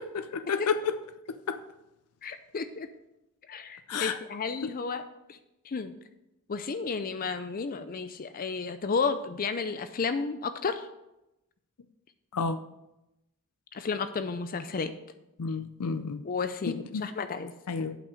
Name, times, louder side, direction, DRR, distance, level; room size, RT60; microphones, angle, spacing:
voice 1, 0.3-0.9 1.3-1.6 3.9-4.2 4.6-4.7 12.3-12.6 15.4-16.2 16.7-17.0 17.7-18.0, left 5 dB, 90° left, 10 dB, 0.5 m, -30 dB
voice 2, 2.2-2.9 3.5-5.4 5.6-5.9 6.5-10.9 13.7-14.9 16.2-17.5, left 5 dB, 40° left, 10 dB, 0.5 m, -32 dB
8.2 x 5.9 x 6.3 m, 0.90 s
head